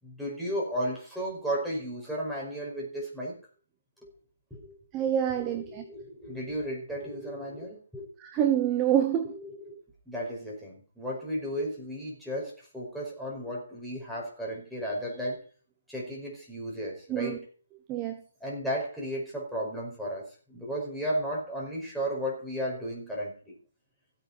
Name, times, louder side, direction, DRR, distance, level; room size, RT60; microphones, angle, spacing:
voice 1, 0.0-3.3 4.0-4.1 4.5-4.7 5.3-8.1 9.2-9.8 10.1-15.5 15.9-17.5 18.4-23.6, equal, ahead, -5 dB, 5.4 m, -34 dB
voice 2, 4.9-5.8 8.2-9.4 17.1-17.4 17.9-18.2, right 10 dB, 20° right, 7 dB, 1.1 m, -26 dB
15.5 x 9.0 x 4.2 m, 0.40 s
figure-of-eight pair, 145°, 0 cm